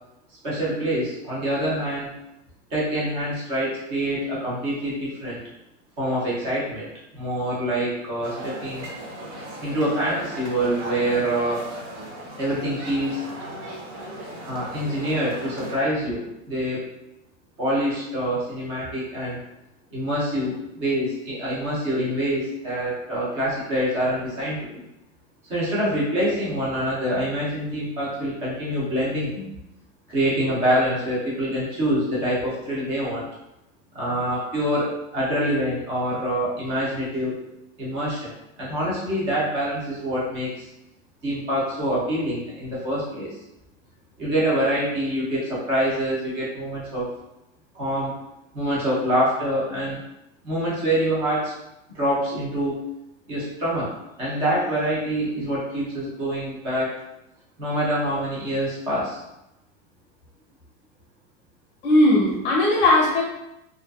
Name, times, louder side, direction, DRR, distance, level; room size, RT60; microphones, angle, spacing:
voice 1, 0.4-2.1 2.7-5.4 6.0-6.9 7.1-8.9 9.6-11.6 12.4-13.2 14.4-16.8 17.6-19.4 19.9-24.8 25.5-29.5 30.1-33.3 33.9-37.4 37.8-40.7 41.2-43.4 44.2-47.1 47.7-48.2 48.5-50.0 50.4-51.5 51.9-52.8 53.3-53.9 54.2-57.0 57.6-59.2, equal, 15° right, -7 dB, 0.4 m, -25 dB
sound 1, 8.2-15.8, right 1 dB, 50° right, 0.7 m, -37 dB
voice 2, 61.8-63.2, left 1 dB, 25° left, -3 dB, 0.7 m, -18 dB
2.4 x 2.4 x 2.2 m, 0.90 s
supercardioid pair, 160°, 41 cm